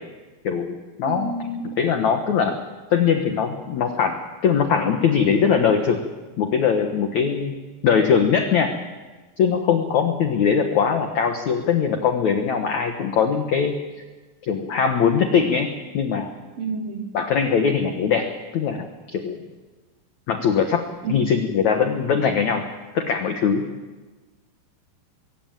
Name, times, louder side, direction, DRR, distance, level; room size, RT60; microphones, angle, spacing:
voice 1, 0.4-1.3 1.6-2.5 2.9-4.2 4.4-6.0 6.4-7.5 7.8-8.7 9.4-13.8 14.4-15.7 15.9-16.3 17.1-18.3 18.5-19.4 20.3-20.8 21.1-22.7 22.9-23.6, left 6 dB, 75° left, 5 dB, 1.7 m, -21 dB
voice 2, 1.0-1.7 16.6-17.1 21.0-21.3, right 3 dB, 40° right, 1 dB, 3.3 m, -29 dB
22.0 x 17.0 x 9.0 m, 1.3 s
omnidirectional pair, 5.3 m